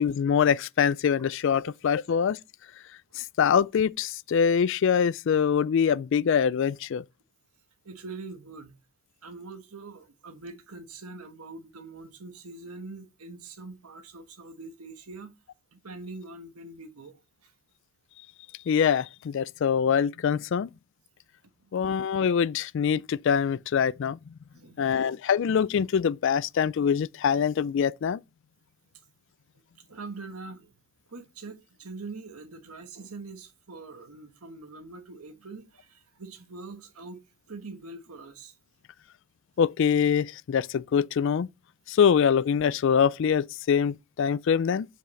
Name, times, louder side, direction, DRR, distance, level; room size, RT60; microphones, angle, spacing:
voice 1, 0.0-2.4 3.2-7.0 18.7-20.7 21.7-24.2 24.8-28.2 39.6-41.5 41.9-44.9, left 7 dB, 55° left, 0.3 m, -24 dB
voice 2, 7.8-8.8 9.2-15.4 15.7-17.5 21.6-21.7 24.5-25.1 29.9-30.7 31.1-37.2 37.5-38.5, right 3 dB, 85° right, 1.3 m, -43 dB
7.6 x 6.9 x 3.2 m
head